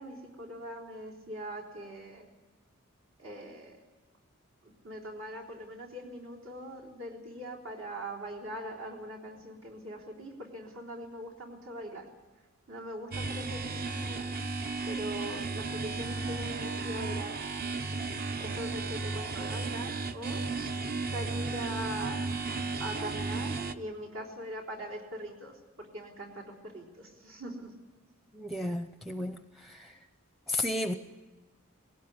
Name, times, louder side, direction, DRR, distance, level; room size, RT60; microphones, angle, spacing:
voice 1, 0.0-2.3 3.2-3.8 4.6-12.1 12.7-14.3 14.8-17.4 18.3-20.5 21.1-22.2 22.8-27.7, right 1 dB, 65° right, -1 dB, 3.8 m, -41 dB
sound 1, 13.1-23.7, right 3 dB, 45° right, 0.8 m, -34 dB
voice 2, 28.3-30.0 30.5-30.9, left 1 dB, ahead, 7 dB, 0.6 m, -33 dB
19.5 x 17.5 x 9.6 m, 1.2 s
head